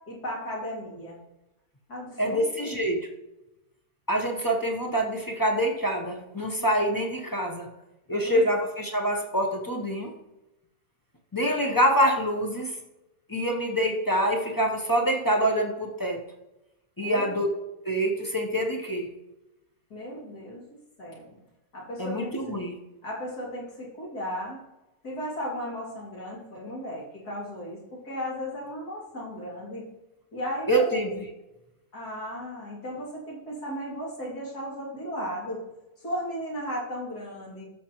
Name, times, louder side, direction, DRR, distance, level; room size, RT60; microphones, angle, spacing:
voice 1, 0.1-1.2 1.9-2.7 8.1-8.4 17.0-17.3 19.9-20.6 21.0-21.4 21.7-22.3 23.0-24.6 25.0-29.8 30.3-30.8 31.9-35.6 36.0-37.6, equal, 80° left, -5 dB, 3.2 m, -35 dB
voice 2, 2.2-3.1 4.1-7.7 8.1-10.1 11.3-12.7 13.3-16.2 17.0-17.5 17.8-19.1 22.0-22.7 30.7-31.2, equal, 20° left, 1 dB, 0.7 m, -26 dB
13.0 x 6.2 x 3.0 m, 0.96 s
omnidirectional pair, 1.6 m